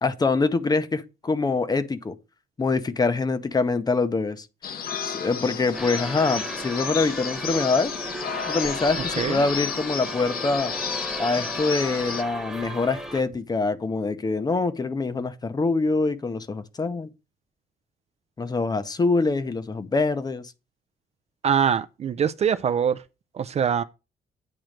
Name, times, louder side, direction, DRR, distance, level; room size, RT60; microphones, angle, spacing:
voice 1, 0.0-2.1 2.6-4.5 5.0-7.9 8.4-10.7 11.2-17.1 18.4-20.5, left 3 dB, 25° left, 0.7 m, -24 dB
sound 1, 4.6-12.2, left 7 dB, 70° left, 0.9 m, -32 dB
sound 2, 5.7-13.2, right 1 dB, 5° right, 1.1 m, -35 dB
voice 2, 21.4-23.0 23.3-23.8, right 7 dB, 40° right, 0.4 m, -23 dB
8.9 x 3.0 x 6.4 m
cardioid pair, 135°, 16 cm